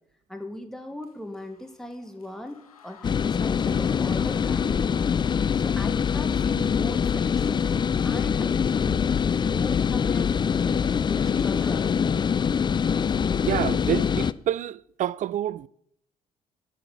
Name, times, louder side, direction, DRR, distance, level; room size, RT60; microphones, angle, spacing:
voice 1, 0.3-4.9 5.5-7.4 8.0-9.1 9.4-12.1, left 1 dB, 5° left, 1.6 m, -39 dB
sound 1, 1.0-9.3, left 7 dB, 90° left, 0.6 m, -50 dB
sound 2, 3.0-14.3, left 7 dB, 25° left, 0.4 m, -24 dB
voice 2, 13.4-15.7, right 12 dB, 45° right, 0.4 m, -28 dB
9.4 x 5.8 x 7.3 m
figure-of-eight pair, 45°, 18 cm